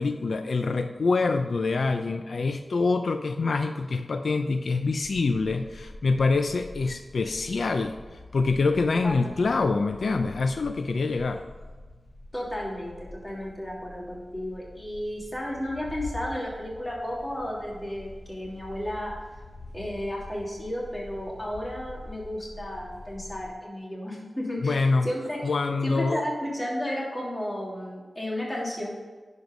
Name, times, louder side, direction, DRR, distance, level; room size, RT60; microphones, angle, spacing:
voice 1, 0.0-8.0 8.3-11.4 24.6-25.1 25.4-26.2, left 3 dB, 80° left, 7 dB, 0.5 m, -25 dB
sound 1, 5.0-23.5, left 2 dB, 65° left, 1.6 m, -45 dB
voice 2, 9.0-9.4 12.3-19.1 19.7-25.4 25.8-28.9, left 1 dB, 20° left, -3 dB, 3.1 m, -33 dB
10.5 x 5.2 x 5.3 m, 1.4 s
wide cardioid pair, 65°, 0 cm